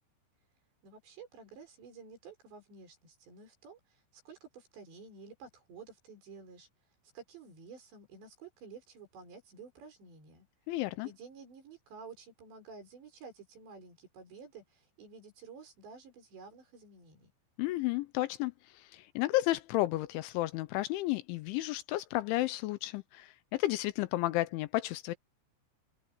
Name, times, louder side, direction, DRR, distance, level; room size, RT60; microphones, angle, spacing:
voice 1, 0.8-6.7 7.1-10.5 11.0-17.3, right 5 dB, 60° right, 8.2 m, -52 dB
voice 2, 10.7-11.1 17.6-25.2, left 17 dB, 80° left, 3.0 m, -32 dB
omnidirectional pair, 5.6 m